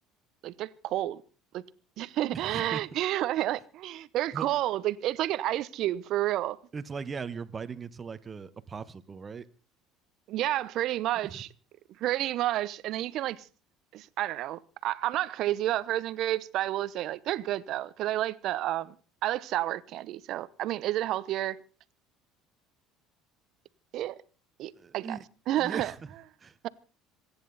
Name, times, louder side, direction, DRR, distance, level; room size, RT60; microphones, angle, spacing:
voice 1, 0.4-1.2 1.5-1.6 2.0-6.6 10.3-11.5 12.0-13.5 13.9-18.9 19.2-21.6 23.9-24.2 24.6-25.2 25.5-25.9, right 14 dB, 60° right, 0.9 m, -30 dB
voice 2, 2.3-2.8 4.3-4.5 6.7-9.5 11.2-11.4 24.7-25.2 25.6-26.0 26.4-26.7, right 5 dB, 30° right, 1.3 m, -39 dB
27.0 x 10.0 x 4.2 m
supercardioid pair, 80°, 0 cm